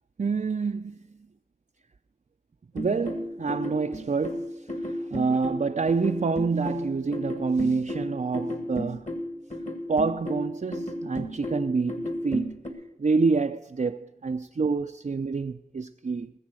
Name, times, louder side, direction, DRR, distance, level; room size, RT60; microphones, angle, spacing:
voice 1, 0.2-1.0 2.7-9.1 9.9-12.5 13.0-16.3, right 4 dB, 45° right, 0.4 m, -27 dB
sound 1, 2.8-12.7, left 1 dB, 45° left, 1.7 m, -33 dB
20.0 x 7.1 x 6.1 m
wide cardioid pair, 40°, 17 cm